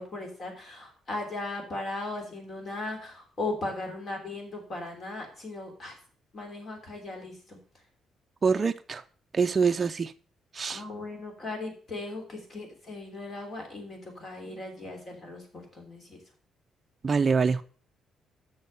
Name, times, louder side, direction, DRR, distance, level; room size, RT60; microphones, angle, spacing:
voice 1, 0.0-6.0 6.3-7.6 10.7-16.2, left 2 dB, 40° left, 3.1 m, -37 dB
voice 2, 8.4-9.0 9.3-10.1 10.5-10.8 17.0-17.6, right 5 dB, 30° right, 0.4 m, -25 dB
6.5 x 6.5 x 6.8 m
cardioid pair, 125°, 0 cm